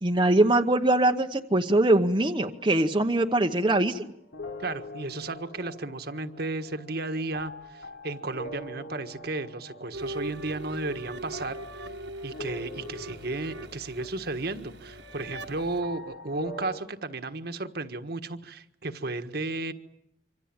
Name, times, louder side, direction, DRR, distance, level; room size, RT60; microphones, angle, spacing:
voice 1, 0.0-4.1, right 2 dB, 25° right, 3 dB, 1.0 m, -22 dB
sound 1, 2.1-16.8, left 1 dB, 70° left, 3.2 m, -45 dB
voice 2, 4.6-11.9 12.2-19.7, right 2 dB, 55° right, 8 dB, 1.6 m, -34 dB
sound 2, 9.9-15.8, right 1 dB, 70° right, 1.7 m, -41 dB
26.5 x 25.0 x 8.9 m, 0.76 s
head